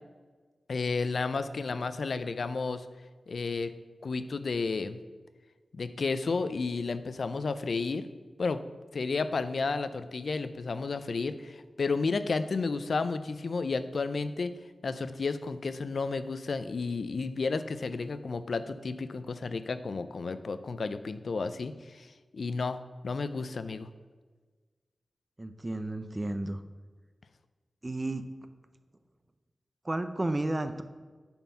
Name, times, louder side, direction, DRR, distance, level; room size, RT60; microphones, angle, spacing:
voice 1, 0.7-2.9 3.3-3.7 4.0-5.0 5.7-8.1 8.4-8.6 8.9-14.5 14.8-22.8 23.0-23.9, left 4 dB, 65° left, 12 dB, 0.5 m, -32 dB
voice 2, 25.4-26.6 27.8-28.2 29.8-30.8, right 2 dB, 25° right, 9 dB, 0.5 m, -32 dB
9.3 x 4.4 x 5.6 m, 1.4 s
wide cardioid pair, 80°, 0 cm